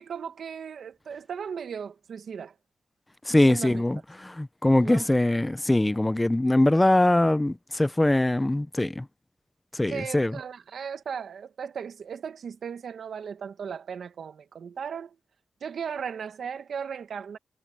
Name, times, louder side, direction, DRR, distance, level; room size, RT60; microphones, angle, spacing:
voice 1, 0.0-2.5 3.4-3.8 4.8-5.1 9.9-15.2 15.6-17.4, right 7 dB, 70° right, 1.6 m, -36 dB
voice 2, 3.3-9.0 9.7-10.3, left 1 dB, 10° left, 0.5 m, -22 dB
wide cardioid pair, 135°, 0 cm